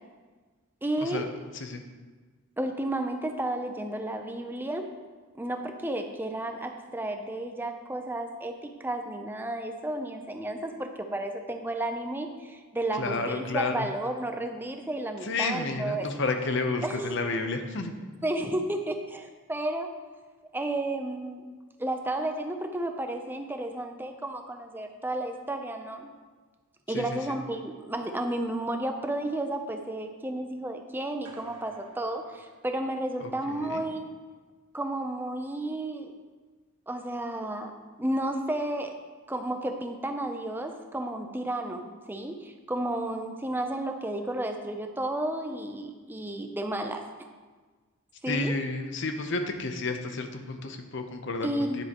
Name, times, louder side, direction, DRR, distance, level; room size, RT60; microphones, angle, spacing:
voice 1, 0.8-1.3 2.6-4.9 5.3-16.1 16.8-17.2 18.2-19.9 20.5-21.5 21.8-26.1 26.9-34.1 34.7-36.1 36.9-37.7 38.0-38.9 39.3-47.1 48.2-48.5 51.4-51.8, right 1 dB, 10° right, 5 dB, 0.5 m, -32 dB
voice 2, 12.9-13.9 15.2-18.3 26.9-27.4 33.2-33.8 48.3-51.8, left 3 dB, 55° left, 6 dB, 0.8 m, -31 dB
sound 1, 31.2-33.4, right 3 dB, 90° right, 1.4 m, -54 dB
9.7 x 7.8 x 3.0 m, 1.4 s
head